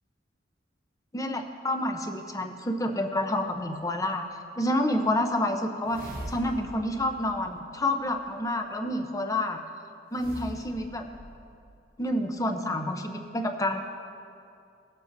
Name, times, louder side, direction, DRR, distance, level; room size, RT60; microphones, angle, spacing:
voice 1, 1.1-4.2 4.6-9.6 10.1-11.0 12.0-13.8, left 1 dB, 20° left, 5 dB, 0.7 m, -29 dB
sound 1, 5.8-8.3 10.1-11.8, right 1 dB, 50° right, 0.7 m, -43 dB
19.0 x 7.4 x 2.6 m, 2.5 s
head